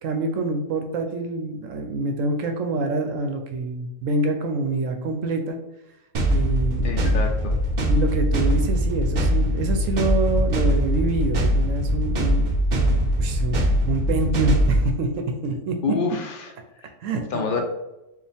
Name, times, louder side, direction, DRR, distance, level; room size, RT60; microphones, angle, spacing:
voice 1, 0.0-5.6 6.3-7.1 7.9-15.8 17.0-17.6, right 2 dB, 70° right, 4 dB, 0.9 m, -26 dB
sound 1, 6.1-14.9, equal, 50° right, 0.5 m, -22 dB
voice 2, 6.8-7.5 15.8-16.5 16.8-16.9 17.3-17.6, left 4 dB, 55° left, 2 dB, 0.6 m, -27 dB
4.7 x 2.4 x 3.4 m, 0.94 s
omnidirectional pair, 1.5 m